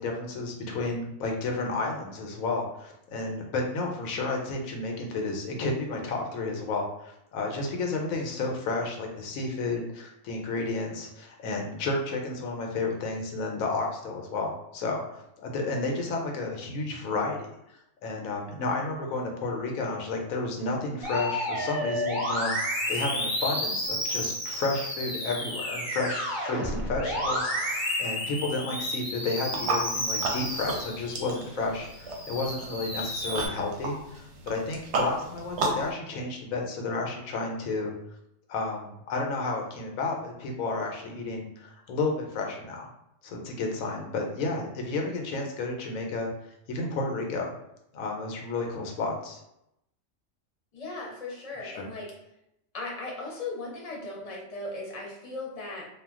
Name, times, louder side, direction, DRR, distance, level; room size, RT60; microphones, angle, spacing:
voice 1, 0.0-22.5 22.9-37.9 38.5-42.9 43.2-46.3 46.7-47.5 47.9-49.4 51.6-51.9, left 3 dB, 80° left, 1 dB, 1.0 m, -32 dB
Musical instrument, 21.0-31.4 31.9-33.5, equal, ahead, 1.0 m, -31 dB
sound 1, 29.4-35.9, right 2 dB, 65° right, 0.8 m, -33 dB
voice 2, 50.7-52.1 52.7-55.9, left 2 dB, 35° left, -4 dB, 0.7 m, -37 dB
2.3 x 2.2 x 3.5 m, 0.81 s
omnidirectional pair, 1.4 m